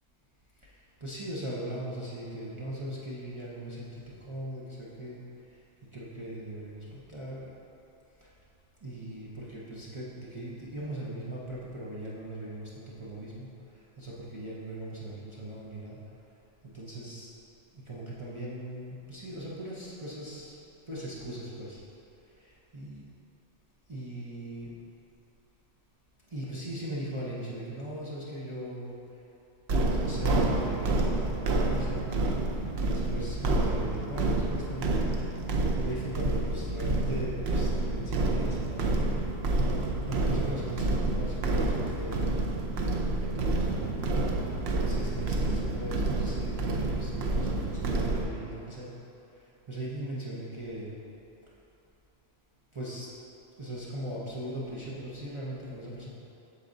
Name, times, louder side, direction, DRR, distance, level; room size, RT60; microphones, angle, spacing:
voice 1, 1.0-5.2 5.9-7.5 8.8-13.5 14.0-16.0 16.6-17.3 17.7-20.5 20.9-21.8 22.7-23.0 23.9-24.7 26.3-28.9 29.9-31.2 31.5-32.0 32.8-34.9 35.5-39.2 40.1-42.4 43.0-44.0 44.9-48.9 49.7-51.0 52.7-53.1 53.6-56.1, right 1 dB, 30° right, -8 dB, 0.8 m, -39 dB
sound 1, 29.7-48.3, right 2 dB, 60° right, 0.9 m, -28 dB
8.3 x 7.0 x 2.6 m, 2.9 s
omnidirectional pair, 1.3 m